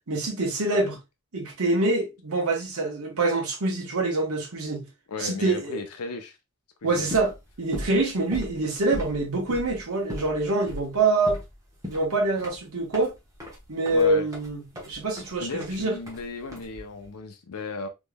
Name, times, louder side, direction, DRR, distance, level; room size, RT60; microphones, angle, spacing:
voice 1, 0.1-1.0 1.3-4.9 5.2-5.8 6.8-11.4 11.9-13.1 13.7-14.6 14.9-15.9, right 2 dB, 70° right, 1.2 m, -25 dB
voice 2, 5.1-6.4 6.8-7.2 13.9-14.3 15.4-17.9, left 3 dB, 80° left, 0.6 m, -35 dB
sound 1, 6.9-17.1, left 1 dB, 15° right, 1.1 m, -39 dB
3.6 x 3.1 x 2.2 m
head